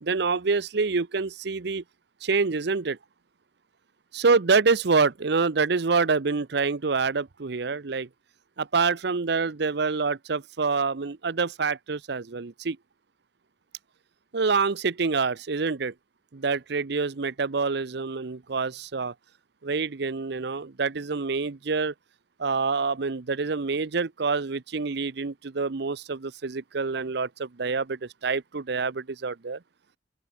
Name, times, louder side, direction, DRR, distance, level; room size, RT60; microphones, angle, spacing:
voice 1, 0.0-1.8 2.2-3.0 4.1-8.1 8.6-12.8 14.3-15.9 16.3-19.1 19.6-21.9 22.4-29.6, right 4 dB, 65° right, 0.7 m, -26 dB
open air
head